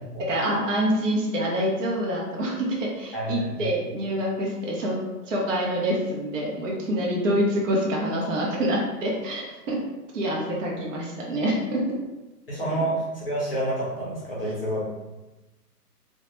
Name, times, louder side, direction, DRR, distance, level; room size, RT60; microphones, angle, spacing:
voice 1, 0.3-5.0 5.3-9.8 10.1-11.8, equal, 50° right, -3 dB, 0.6 m, -26 dB
voice 2, 3.1-3.7 12.5-14.8, right 1 dB, 40° left, -6 dB, 0.5 m, -28 dB
2.2 x 2.1 x 2.9 m, 1.1 s
hypercardioid pair, 175°, 48 cm